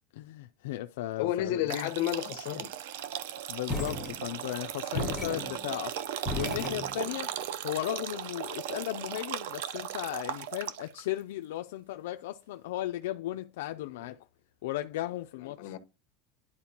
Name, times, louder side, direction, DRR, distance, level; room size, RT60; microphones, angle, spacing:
voice 1, 0.1-1.9 3.5-6.0 6.4-7.3 7.6-14.2 14.6-15.7, left 15 dB, 85° left, 0.4 m, -36 dB
voice 2, 1.2-2.7 15.4-15.8, left 13 dB, 65° left, 1.0 m, -31 dB
sound 1, 1.7-11.0, right 11 dB, 80° right, 0.6 m, -37 dB
sound 2, 3.7-4.6 4.9-7.3, left 1 dB, 5° right, 2.1 m, -36 dB
11.0 x 4.3 x 2.9 m
supercardioid pair, 150°, 0 cm